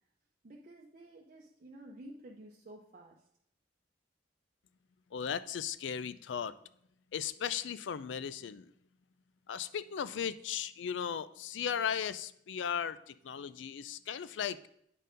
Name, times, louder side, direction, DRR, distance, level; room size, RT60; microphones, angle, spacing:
voice 1, 0.4-3.2, right 1 dB, 45° right, -1 dB, 0.7 m, -52 dB
voice 2, 5.1-6.6 7.1-8.7 9.5-14.6, left 8 dB, 85° left, 16 dB, 0.4 m, -36 dB
9.0 x 4.4 x 5.1 m, 0.72 s
head